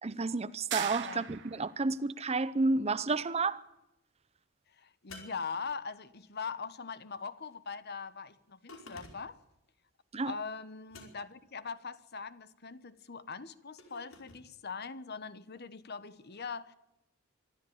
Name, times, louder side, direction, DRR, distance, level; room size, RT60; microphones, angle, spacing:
voice 1, 0.0-3.6 10.1-10.3, right 3 dB, 30° right, 0.7 m, -31 dB
sound 1, 0.7-1.8, right 10 dB, 60° right, 1.1 m, -38 dB
voice 2, 4.8-9.4 10.2-16.7, left 5 dB, 50° left, 1.2 m, -41 dB
sound 2, 5.1-6.2 8.7-9.5 10.9-11.5 13.8-14.4, left 2 dB, 75° left, 4.9 m, -52 dB
24.5 x 13.0 x 8.8 m
head